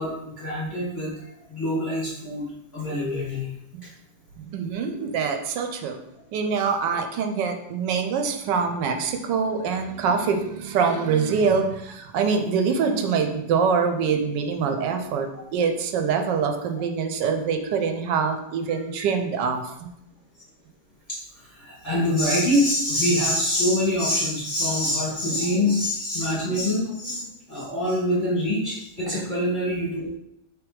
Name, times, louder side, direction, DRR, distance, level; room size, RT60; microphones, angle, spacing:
voice 1, 0.0-2.5 2.7-3.5 5.0-5.1 6.9-7.0 19.0-19.1 21.1-30.1, left 1 dB, 15° left, -8 dB, 0.8 m, -25 dB
voice 2, 4.5-6.0 6.3-19.9 29.1-29.3, right 5 dB, 70° right, 5 dB, 1.1 m, -24 dB
3.4 x 3.2 x 4.7 m, 0.80 s
omnidirectional pair, 2.2 m